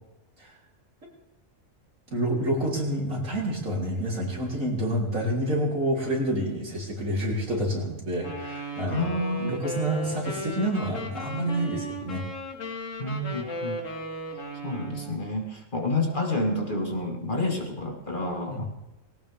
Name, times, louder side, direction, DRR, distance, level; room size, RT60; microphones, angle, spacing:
voice 1, 2.1-9.1 9.4-12.3 18.5-18.6, right 1 dB, 75° right, -3 dB, 4.0 m, -28 dB
Wind instrument woodwind instrument, 8.2-15.2, equal, 65° left, 2.4 m, -36 dB
voice 2, 8.9-9.5 13.0-13.8 14.6-18.6, left 2 dB, 40° left, 2 dB, 2.0 m, -29 dB
19.0 x 18.0 x 3.5 m, 1.0 s
omnidirectional pair, 1.4 m